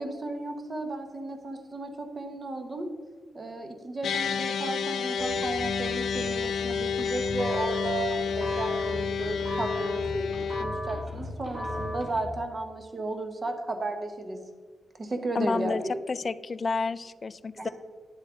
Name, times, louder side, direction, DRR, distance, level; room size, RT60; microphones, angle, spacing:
voice 1, 0.0-2.9 3.3-14.5 14.9-16.0 17.5-17.7, right 2 dB, 30° right, 6 dB, 1.1 m, -34 dB
sound 1, 4.0-10.6, left 6 dB, 80° left, 0.7 m, -30 dB
sound 2, 5.2-12.2, left 1 dB, 10° right, 2.4 m, -35 dB
voice 2, 15.3-15.8 16.1-17.7, left 4 dB, 35° left, 17 dB, 0.3 m, -30 dB
10.5 x 7.5 x 3.8 m, 1.5 s
wide cardioid pair, 130°, 0 cm